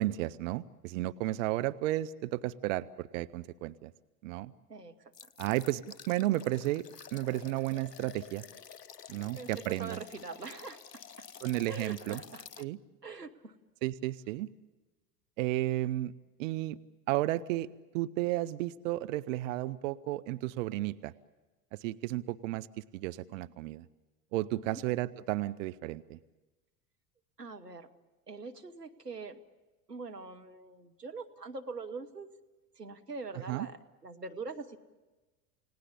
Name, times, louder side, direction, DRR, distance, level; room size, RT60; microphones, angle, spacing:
voice 1, 0.0-3.9 4.2-4.5 5.4-6.8 7.1-8.4 9.1-10.0 11.4-12.2 12.6-12.8 13.8-14.5 15.4-16.1 16.4-16.8 17.1-17.7 17.9-21.1 21.7-23.9 24.3-26.2 33.5-33.7, right 16 dB, 55° right, 14 dB, 0.7 m, -33 dB
voice 2, 4.7-5.3 9.1-11.3 11.7-12.4 13.0-13.5 24.5-24.8 27.4-27.9 28.3-29.4 29.9-32.3 32.8-34.8, right 4 dB, 90° right, 6 dB, 1.3 m, -43 dB
sound 1, 5.1-12.7, left 7 dB, 85° left, 0.7 m, -50 dB
29.5 x 18.0 x 8.5 m, 1.2 s
figure-of-eight pair, 75°, 47 cm